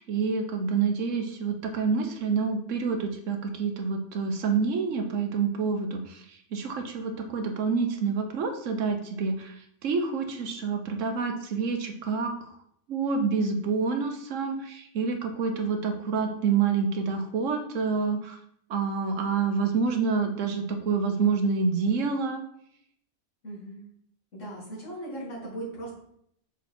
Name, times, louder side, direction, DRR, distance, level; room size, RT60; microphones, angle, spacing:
voice 1, 0.0-12.5 12.9-18.4 18.7-22.4, right 5 dB, 80° right, 5 dB, 1.2 m, -28 dB
voice 2, 23.4-23.9 24.3-25.9, right 1 dB, 75° left, -5 dB, 2.8 m, -38 dB
6.2 x 4.2 x 4.3 m, 0.70 s
omnidirectional pair, 1.3 m